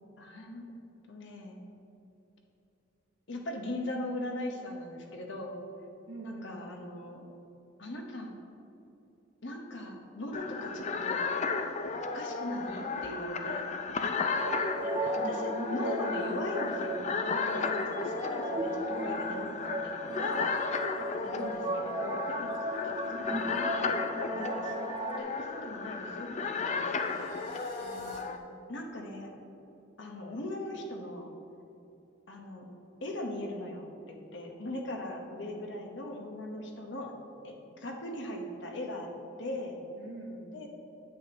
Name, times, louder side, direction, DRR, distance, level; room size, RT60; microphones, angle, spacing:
voice 1, 0.2-0.7 1.1-1.7 3.3-5.6 6.2-7.2 7.8-8.3 9.4-11.3 12.1-13.7 14.0-14.2 14.8-20.5 21.2-24.9 25.2-27.7 28.7-29.3 30.0-31.3 32.3-32.7 33.0-37.1 37.4-39.1 39.4-39.8 40.5-40.7, left 1 dB, 65° left, 1 dB, 1.1 m, -39 dB
voice 2, 6.1-6.6 14.5-14.7 21.2-21.8 27.8-28.3 40.0-40.5, right 2 dB, 80° right, -2 dB, 1.5 m, -46 dB
sound 1, 10.3-28.4, left 4 dB, 35° left, 0.4 m, -34 dB
sound 2, 14.3-25.2, right 1 dB, 25° right, 0.6 m, -36 dB
sound 3, 26.2-28.2, right 5 dB, 65° right, 1.6 m, -58 dB
9.2 x 7.9 x 2.9 m, 2.8 s
head